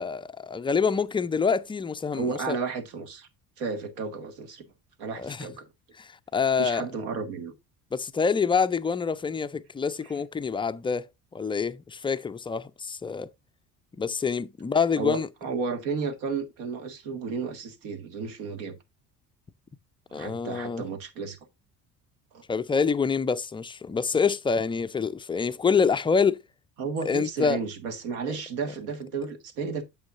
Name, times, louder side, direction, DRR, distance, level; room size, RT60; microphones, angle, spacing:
voice 1, 0.0-2.6 5.2-5.5 6.0-6.9 7.9-11.1 11.3-13.3 14.0-15.3 20.1-20.8 22.5-26.4 27.0-27.6 28.3-28.4, left 5 dB, 10° left, 0.4 m, -26 dB
voice 2, 2.1-3.3 3.6-4.7 5.0-5.7 6.6-7.5 15.0-18.8 20.1-21.4 22.3-22.4 26.8-29.8, right 5 dB, 70° right, 1.6 m, -33 dB
8.8 x 7.4 x 2.5 m
hypercardioid pair, 60°, 47 cm